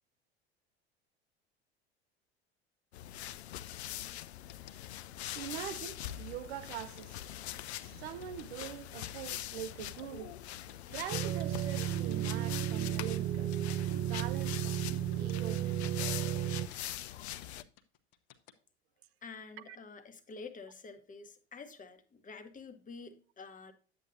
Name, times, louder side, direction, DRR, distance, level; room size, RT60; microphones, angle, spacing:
sound 1, 2.9-17.6, left 13 dB, 80° left, 0.5 m, -43 dB
sound 2, 4.5-18.5, left 12 dB, 55° left, 1.0 m, -56 dB
voice 1, 5.3-7.2 7.8-10.4 10.6-13.6 14.1-14.8 15.2-16.0 19.7-19.8, right 11 dB, 70° right, 0.7 m, -43 dB
sound 3, 11.1-16.7, right 13 dB, 25° right, 0.3 m, -33 dB
voice 2, 19.2-23.7, left 4 dB, 25° left, 1.3 m, -48 dB
9.7 x 8.4 x 2.6 m
figure-of-eight pair, 70°, 32 cm